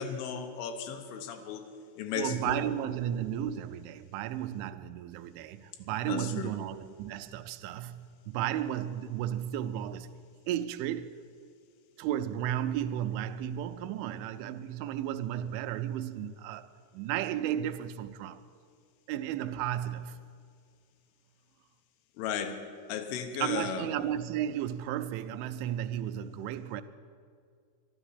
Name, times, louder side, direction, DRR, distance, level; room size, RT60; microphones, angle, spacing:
voice 1, 0.0-1.6 2.0-2.7 6.1-6.5 22.2-22.6 22.9-23.9, left 7 dB, 90° left, 3.5 m, -35 dB
voice 2, 2.2-10.2 10.5-11.1 12.0-16.7 16.9-18.4 19.1-20.2 23.4-26.8, right 11 dB, 85° right, 3.0 m, -34 dB
12.5 x 12.0 x 9.8 m
omnidirectional pair, 5.3 m